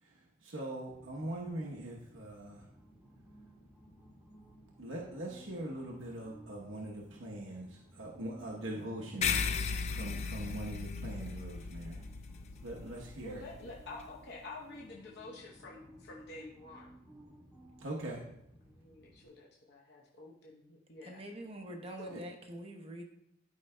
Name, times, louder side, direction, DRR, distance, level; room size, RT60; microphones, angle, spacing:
voice 1, 0.0-2.7 4.8-9.4 9.8-12.0 12.6-13.4 17.8-18.2 22.1-22.2, right 1 dB, 75° right, -3 dB, 1.0 m, -42 dB
sound 1, 0.9-19.3, equal, 10° right, 1.2 m, -58 dB
sound 2, 9.2-14.0, left 5 dB, 30° left, 0.3 m, -37 dB
voice 2, 13.2-17.0 18.7-21.2 22.0-22.2, left 2 dB, 55° left, -3 dB, 0.9 m, -49 dB
voice 3, 21.0-23.0, right 1 dB, 30° right, 3 dB, 0.9 m, -45 dB
12.0 x 5.5 x 2.2 m, 0.80 s
head